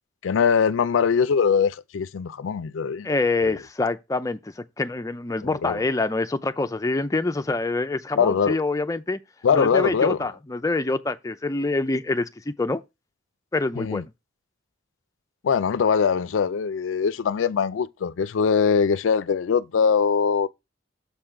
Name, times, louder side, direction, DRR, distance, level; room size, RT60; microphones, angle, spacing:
voice 1, 0.2-3.1 3.4-3.5 5.4-5.8 8.2-8.6 9.4-10.2 13.8-14.0 15.4-20.5, left 6 dB, 80° left, 0.4 m, -22 dB
voice 2, 3.0-9.2 9.5-12.8 13.5-14.0, left 2 dB, 15° left, 0.4 m, -26 dB
7.1 x 3.8 x 4.5 m
head